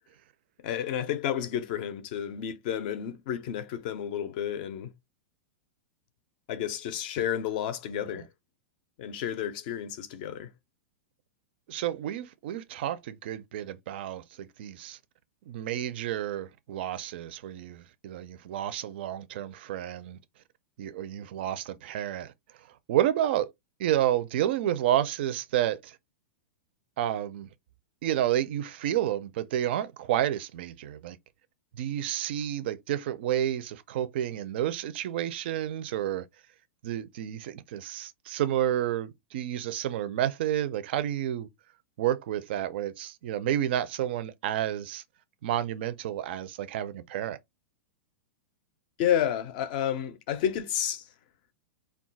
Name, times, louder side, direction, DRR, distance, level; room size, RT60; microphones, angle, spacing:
voice 1, 0.6-4.9 6.5-8.3 9.0-10.5 49.0-51.0, left 10 dB, 40° left, 0.4 m, -31 dB
voice 2, 11.7-15.0 15.5-20.2 20.8-22.3 22.9-23.5 23.8-26.0 27.0-27.5 28.0-31.2 31.8-36.3 36.8-41.5 42.0-45.0 45.4-47.4, right 11 dB, 50° right, 0.4 m, -30 dB
2.3 x 2.2 x 3.8 m
supercardioid pair, 170°, 7 cm